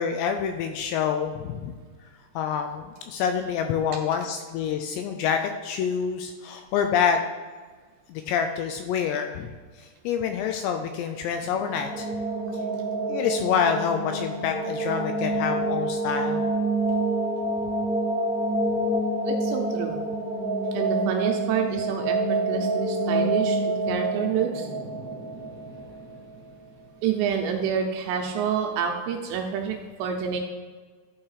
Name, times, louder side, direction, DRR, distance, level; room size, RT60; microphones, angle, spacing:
voice 1, 0.0-1.7 2.4-7.2 8.1-9.5 9.8-12.1 13.1-16.4, left 7 dB, 85° left, 6 dB, 2.5 m, -27 dB
sound 1, 11.5-26.3, right 2 dB, 5° right, 0.6 m, -27 dB
voice 2, 19.2-20.0 20.7-24.7 27.0-30.4, right 7 dB, 80° right, 3 dB, 2.7 m, -28 dB
11.5 x 4.8 x 4.7 m, 1.5 s
omnidirectional pair, 5.5 m